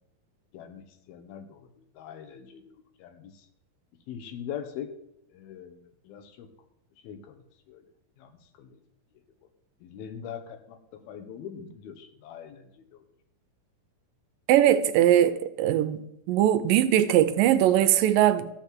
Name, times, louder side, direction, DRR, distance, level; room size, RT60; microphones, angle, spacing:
voice 1, 0.5-3.5 4.1-4.9 5.3-5.8 6.0-6.5 7.0-7.8 8.2-8.3 8.6-8.8 9.8-10.8 11.1-13.0, left 8 dB, 85° left, 8 dB, 3.0 m, -42 dB
voice 2, 14.5-16.0 16.3-18.5, right 11 dB, 80° right, 12 dB, 2.2 m, -21 dB
14.0 x 5.3 x 7.5 m, 0.79 s
omnidirectional pair, 4.3 m